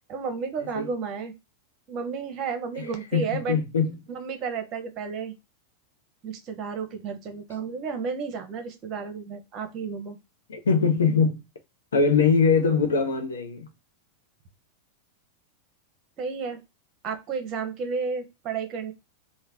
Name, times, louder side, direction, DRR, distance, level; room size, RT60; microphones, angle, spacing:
voice 1, 0.1-1.3 1.9-3.6 4.1-5.3 6.2-10.2 16.2-16.6 17.0-18.9, right 5 dB, 30° right, 0.8 m, -32 dB
voice 2, 2.8-4.0 10.5-11.4 11.9-13.7, left 5 dB, 65° left, 0.8 m, -22 dB
3.2 x 2.2 x 3.4 m
figure-of-eight pair, 90°, 0 cm